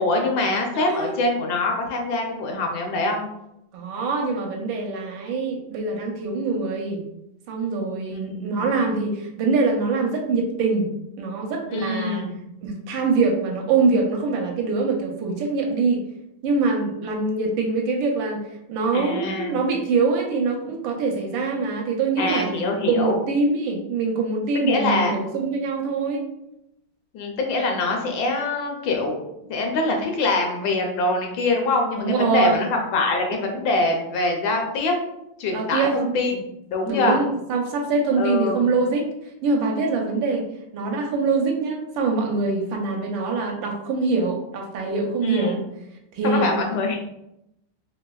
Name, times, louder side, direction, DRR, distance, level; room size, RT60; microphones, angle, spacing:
voice 1, 0.0-3.2 8.1-8.7 11.7-12.4 18.9-19.6 22.2-23.2 24.6-25.2 27.1-29.2 29.5-34.9 35.4-36.4 36.7-37.2 38.2-38.6 45.2-45.6 46.2-47.0, left 2 dB, 75° left, 2 dB, 1.2 m, -24 dB
voice 2, 0.7-1.1 3.7-7.0 7.5-10.9 11.2-12.3 12.6-16.1 16.4-18.4 18.7-22.5 22.9-26.2 32.0-32.7 35.5-36.2 36.9-39.1 39.4-40.4 40.7-45.6 46.1-46.5, right 4 dB, 75° right, 1 dB, 1.3 m, -24 dB
3.3 x 2.9 x 2.3 m, 0.83 s
omnidirectional pair, 2.2 m